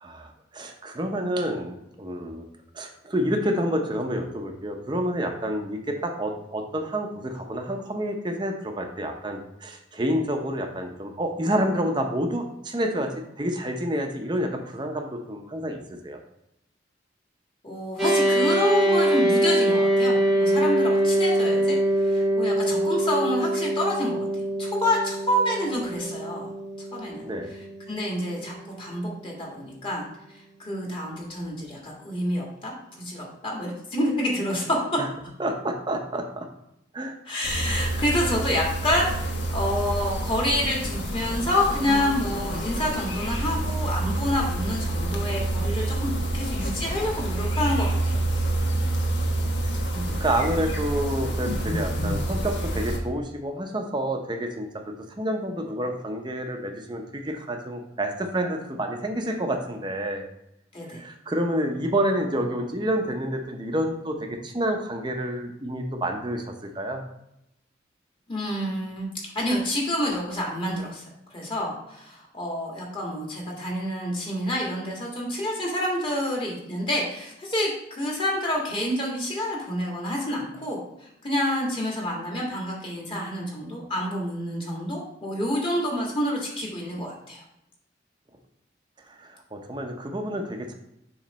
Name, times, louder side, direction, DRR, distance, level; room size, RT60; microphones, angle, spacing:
voice 1, 0.0-2.4 2.7-16.2 27.2-27.5 35.0-35.1 35.4-36.5 36.9-37.2 49.6-49.8 50.2-60.2 60.9-67.0 89.1-90.7, right 1 dB, 25° right, 4 dB, 0.7 m, -29 dB
voice 2, 17.6-24.3 24.6-26.5 26.8-27.2 27.9-30.0 30.3-35.0 37.3-48.2 49.9-50.1 60.7-61.0 68.3-69.1 69.3-87.4, left 1 dB, 25° left, -2 dB, 1.6 m, -28 dB
sound 1, 18.0-29.5, right 1 dB, ahead, 1.0 m, -24 dB
sound 2, 37.4-53.0, right 1 dB, 70° left, 1.1 m, -28 dB
7.3 x 3.2 x 5.2 m, 0.82 s
head